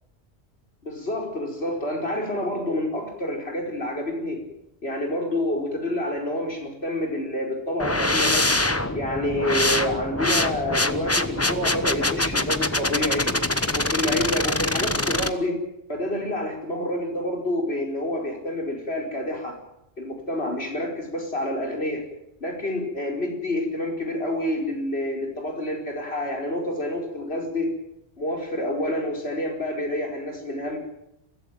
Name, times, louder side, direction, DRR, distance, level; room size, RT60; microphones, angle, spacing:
voice 1, 0.8-4.4 4.8-8.5 8.9-13.4 13.7-15.6 15.9-19.6 20.0-22.0 22.4-27.7 28.2-30.8, left 1 dB, 70° left, 1 dB, 5.1 m, -28 dB
sound 1, 7.8-15.3, left 2 dB, 15° left, 1.0 m, -24 dB
22.5 x 15.5 x 9.3 m, 0.83 s
omnidirectional pair, 1.1 m